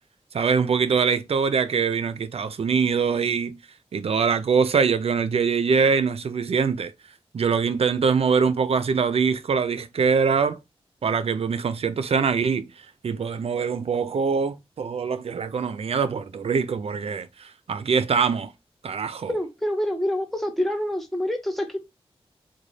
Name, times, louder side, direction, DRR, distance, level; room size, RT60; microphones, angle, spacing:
voice 1, 0.3-3.6 3.9-6.9 7.3-10.6 11.0-12.7 13.0-18.5 18.8-19.3, right 5 dB, 70° right, 0.5 m, -23 dB
voice 2, 19.3-21.8, left 1 dB, ahead, 0.8 m, -26 dB
4.0 x 2.2 x 3.1 m
wide cardioid pair, 90°, 10 cm